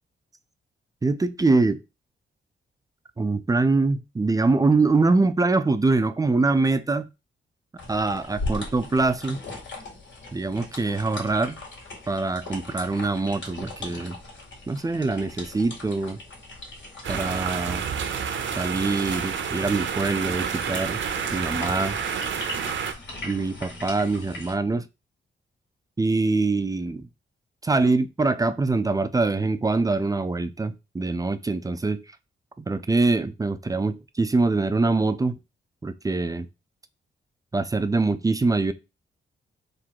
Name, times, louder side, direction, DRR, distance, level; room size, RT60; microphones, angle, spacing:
voice 1, 1.0-1.8 3.2-7.1 7.9-9.4 10.3-11.6 12.1-14.2 14.7-16.2 17.1-17.9 18.6-21.0 21.3-22.0 23.2-24.8 26.0-27.1 27.6-32.0 32.6-35.4 35.8-36.5 37.5-38.7, right 3 dB, 15° right, 0.4 m, -24 dB
sound 1, 7.8-24.5, left 2 dB, 65° left, 2.0 m, -39 dB
sound 2, 17.0-22.9, right 7 dB, 65° right, 0.7 m, -29 dB
3.7 x 2.5 x 4.5 m
cardioid pair, 105°, 21 cm